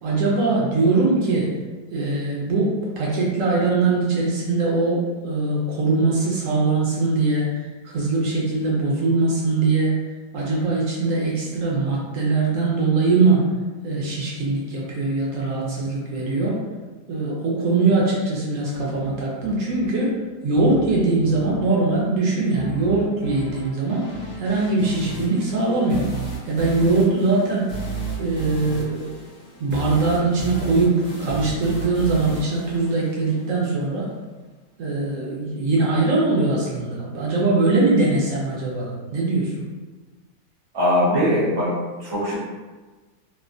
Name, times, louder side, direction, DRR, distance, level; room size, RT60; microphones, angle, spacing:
voice 1, 0.0-1.5 1.9-9.9 10.3-13.5 13.8-16.6 17.1-20.2 20.4-24.1 24.3-26.0 26.5-27.7 28.2-29.1 29.6-34.1 34.8-39.6, right 3 dB, 70° right, -4 dB, 0.8 m, -21 dB
sound 1, 18.7-33.7, right 3 dB, 45° left, 0.6 m, -35 dB
voice 2, 40.7-41.7 42.0-42.4, equal, 25° right, -8 dB, 0.5 m, -20 dB
3.2 x 2.1 x 2.5 m, 1.3 s
omnidirectional pair, 1.9 m